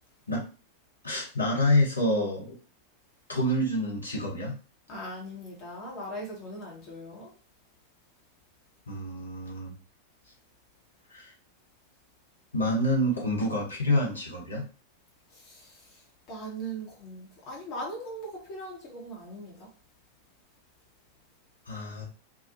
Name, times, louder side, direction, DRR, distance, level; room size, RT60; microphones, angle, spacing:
voice 1, 1.0-2.6 3.3-4.6 8.9-9.7 11.1-11.3 12.5-14.6 21.7-22.0, left 1 dB, 80° left, 1.0 m, -27 dB
voice 2, 4.9-7.3 15.4-15.7 16.3-19.7, right 1 dB, 35° left, 1.0 m, -39 dB
2.8 x 2.3 x 2.6 m
figure-of-eight pair, 90°, 0 cm